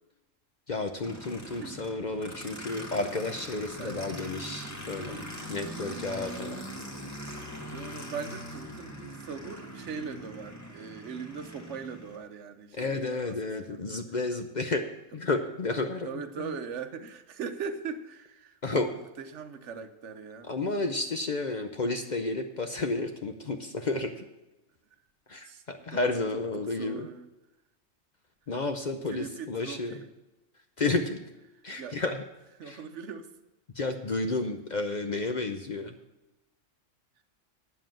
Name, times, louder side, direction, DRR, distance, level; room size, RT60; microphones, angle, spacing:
voice 1, 0.7-6.6 12.7-14.8 15.1-16.6 18.6-18.9 20.5-24.2 25.3-27.1 28.5-30.0 30.8-31.2 31.6-32.2 32.6-32.8 33.8-35.9, left 3 dB, 45° left, 6 dB, 0.7 m, -31 dB
Aircraft, 1.0-12.2, equal, 15° left, 1.4 m, -42 dB
voice 2, 3.8-4.3 7.7-13.8 16.0-20.5 25.5-25.6 25.9-26.2 26.6-27.3 29.1-30.1 31.8-32.0 32.6-33.3, right 6 dB, 70° right, 9 dB, 1.1 m, -40 dB
9.0 x 7.4 x 7.5 m, 1.0 s
omnidirectional pair, 1.3 m